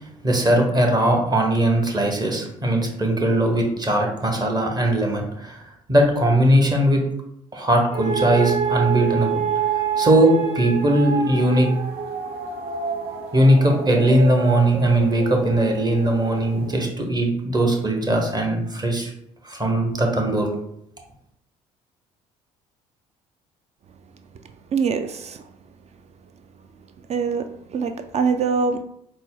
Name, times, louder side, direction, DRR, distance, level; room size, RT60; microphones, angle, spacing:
voice 1, 0.2-5.6 5.9-7.0 7.5-9.4 10.0-11.7 13.3-19.1 19.4-20.5, right 1 dB, 25° right, 2 dB, 1.1 m, -19 dB
sound 1, 7.9-16.8, right 6 dB, 55° right, 1.1 m, -27 dB
voice 2, 24.7-25.5 27.1-28.8, right 5 dB, 40° right, 8 dB, 0.4 m, -24 dB
3.9 x 2.1 x 3.8 m, 0.74 s
hypercardioid pair, 55°, 17 cm